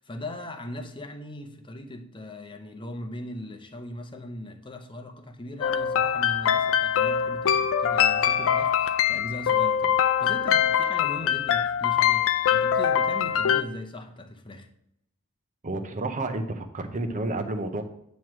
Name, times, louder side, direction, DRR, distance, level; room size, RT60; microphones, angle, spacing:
voice 1, 0.0-14.7, left 1 dB, 20° left, 6 dB, 0.7 m, -39 dB
sound 1, 5.6-13.6, left 8 dB, 65° left, 0.4 m, -23 dB
voice 2, 15.6-17.8, right 2 dB, 35° right, 7 dB, 0.7 m, -30 dB
9.0 x 3.1 x 6.1 m, 0.78 s
head